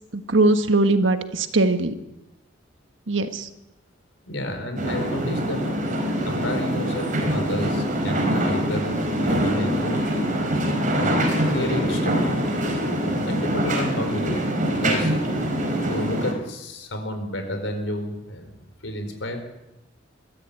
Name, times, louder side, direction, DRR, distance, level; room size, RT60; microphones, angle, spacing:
voice 1, 0.1-1.9 3.1-3.5, right 2 dB, 75° right, 8 dB, 1.6 m, -20 dB
voice 2, 4.3-5.7 6.2-10.0 10.9-11.2 11.5-12.4 13.2-14.5 14.8-15.1 15.7-19.4, left 1 dB, 80° left, 6 dB, 4.6 m, -31 dB
sound 1, 4.8-16.3, equal, 45° right, 4.1 m, -24 dB
22.0 x 14.0 x 8.6 m, 0.93 s
head